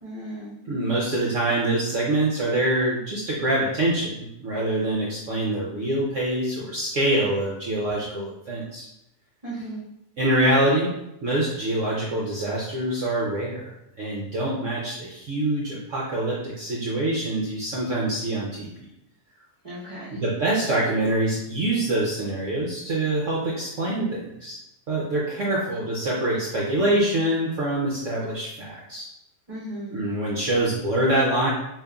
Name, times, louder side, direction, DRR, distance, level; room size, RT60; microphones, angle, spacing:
voice 1, 0.0-0.6 9.4-9.8 19.6-20.2 29.5-30.0, right 1 dB, 30° right, -10 dB, 0.8 m, -36 dB
voice 2, 0.7-8.9 10.2-10.9 11.2-13.6 14.0-18.8 20.1-24.6 24.9-29.1 29.9-31.5, right 1 dB, 60° right, -4 dB, 0.9 m, -25 dB
5.0 x 2.8 x 2.3 m, 0.84 s
omnidirectional pair, 1.7 m